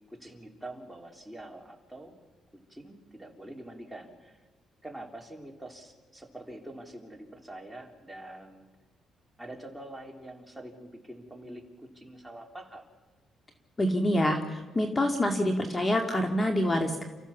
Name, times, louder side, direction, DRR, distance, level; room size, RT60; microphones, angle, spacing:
voice 1, 0.1-2.1 2.5-4.4 4.8-8.7 9.4-12.9, right 1 dB, 5° right, 2 dB, 3.7 m, -45 dB
voice 2, 13.8-17.1, left 1 dB, 25° left, 4 dB, 2.2 m, -26 dB
29.5 x 14.5 x 7.3 m, 1.4 s
cardioid pair, 90°, 0 cm